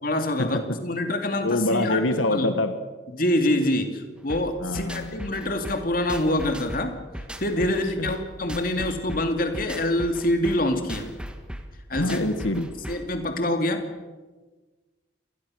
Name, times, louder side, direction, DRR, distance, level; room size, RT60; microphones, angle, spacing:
voice 1, 0.0-2.5 3.1-7.0 7.4-11.1 11.9-12.2 12.9-13.8, left 1 dB, 45° left, 6 dB, 2.5 m, -25 dB
voice 2, 1.4-2.8 4.6-5.2 7.6-7.7 8.0-8.1 12.0-12.7, left 2 dB, 90° left, 8 dB, 1.6 m, -25 dB
sound 1, 4.3-13.2, equal, 5° right, 1.5 m, -38 dB
27.0 x 20.0 x 6.4 m, 1.3 s
head